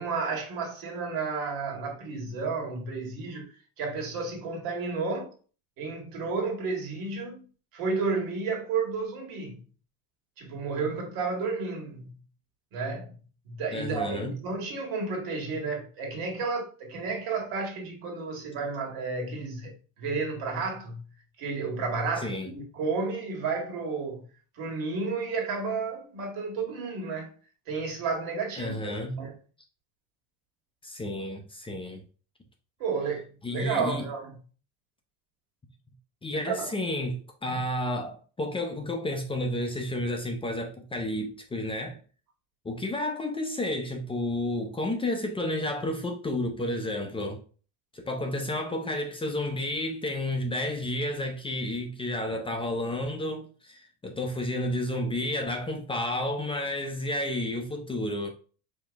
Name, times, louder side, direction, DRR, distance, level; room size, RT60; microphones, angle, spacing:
voice 1, 0.0-5.3 5.8-7.4 7.7-9.6 10.4-12.1 12.7-13.1 13.5-21.1 21.4-24.3 24.6-27.3 27.7-29.4 32.8-34.3 36.3-36.6 37.5-37.6, right 4 dB, 75° right, 1.9 m, -32 dB
voice 2, 13.7-14.3 22.2-22.5 28.6-29.2 30.8-32.0 33.4-34.0 36.2-42.0 42.6-47.4 47.9-58.3, left 1 dB, 15° left, 0.6 m, -31 dB
5.0 x 2.9 x 3.4 m
cardioid pair, 140°, 36 cm